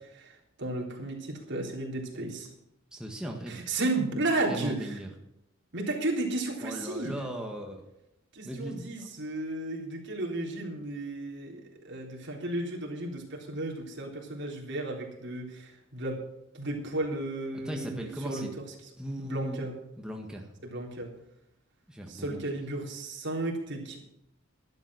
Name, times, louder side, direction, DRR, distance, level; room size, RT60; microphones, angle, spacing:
voice 1, 0.1-2.5 3.5-5.0 5.7-7.3 8.3-16.2 16.5-18.5 19.2-19.7 20.6-21.1 22.1-24.0, right 2 dB, 60° right, -2 dB, 3.7 m, -34 dB
voice 2, 2.9-3.6 4.5-5.1 6.6-7.8 8.4-9.1 17.6-18.5 19.0-19.7 20.0-20.5 21.9-22.4, right 1 dB, 5° right, 0 dB, 1.5 m, -37 dB
12.5 x 12.0 x 6.4 m, 0.83 s
head